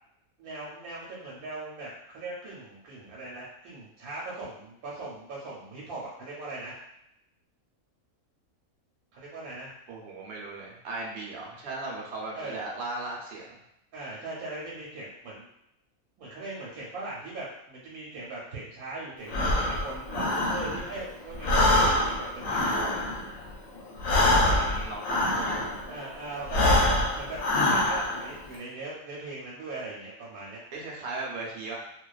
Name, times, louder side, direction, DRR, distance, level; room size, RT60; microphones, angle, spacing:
voice 1, 0.4-6.8 9.1-9.7 12.3-12.6 13.9-15.5 16.2-23.0 25.9-30.6, right 2 dB, 85° right, -5 dB, 1.1 m, -39 dB
voice 2, 9.9-13.6 24.4-25.7 30.7-31.8, right 2 dB, 60° right, -3 dB, 0.7 m, -37 dB
Breathing, 19.3-21.0 21.3-25.9 26.4-28.3, left 1 dB, 75° left, 0.9 m, -25 dB
2.4 x 2.2 x 2.3 m, 0.81 s
omnidirectional pair, 1.5 m